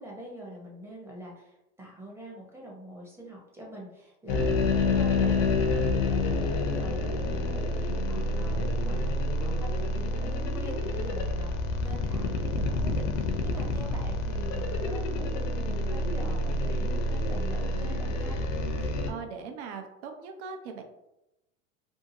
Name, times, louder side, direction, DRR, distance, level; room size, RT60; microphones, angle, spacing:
voice 1, 0.0-5.9 6.5-11.5 11.8-18.4, equal, 5° right, -3 dB, 0.7 m, -44 dB
sound 1, 4.3-19.1, left 2 dB, 60° left, 0.7 m, -28 dB
voice 2, 18.7-20.8, right 6 dB, 55° right, 4 dB, 0.6 m, -41 dB
2.7 x 2.4 x 2.7 m, 0.89 s
hypercardioid pair, 105°, 42 cm